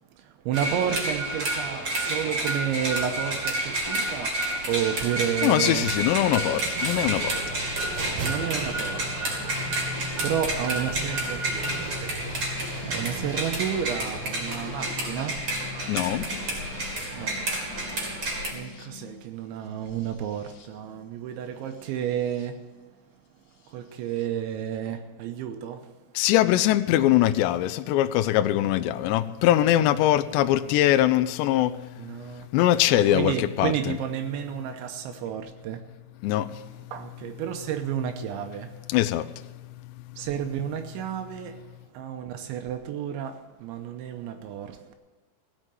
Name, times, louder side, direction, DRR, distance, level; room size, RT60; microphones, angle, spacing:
voice 1, 0.2-5.9 8.2-9.4 9.7-12.0 12.6-15.5 17.1-22.6 23.7-25.9 32.0-32.5 32.9-35.8 36.9-38.7 40.2-41.6 41.9-44.9, right 9 dB, 80° right, 3.0 m, -31 dB
sound 1, 0.5-18.5, right 1 dB, 35° right, 2.4 m, -30 dB
voice 2, 5.4-7.4 15.9-16.3 26.2-31.9 32.5-33.7 36.2-36.6 38.9-39.5, left 13 dB, 85° left, 2.5 m, -22 dB
sound 2, 5.7-14.2, right 4 dB, 60° right, 2.8 m, -38 dB
sound 3, 6.7-22.5 23.6-24.3, left 6 dB, 65° left, 2.6 m, -42 dB
16.5 x 6.4 x 9.0 m
omnidirectional pair, 5.6 m